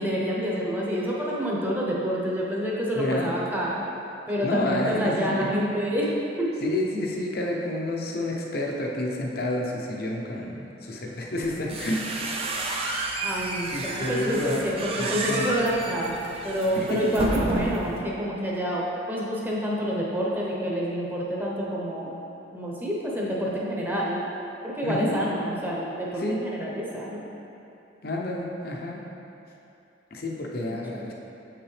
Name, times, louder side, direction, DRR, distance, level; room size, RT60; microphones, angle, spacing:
voice 1, 0.0-3.8 4.3-6.1 6.4-6.5 13.2-16.2 16.4-22.2 22.5-24.2 24.6-27.2 30.7-31.1, equal, 10° right, -5 dB, 0.9 m, -28 dB
voice 2, 2.9-3.3 4.4-5.5 6.6-12.0 13.7-15.5 16.8-17.0 24.8-25.2 26.2-26.4 28.0-29.0 30.1-31.1, left 1 dB, 55° left, -1 dB, 0.8 m, -29 dB
sound 1, 11.4-18.0, right 2 dB, 30° right, 0.6 m, -30 dB
7.1 x 5.9 x 3.3 m, 2.8 s
head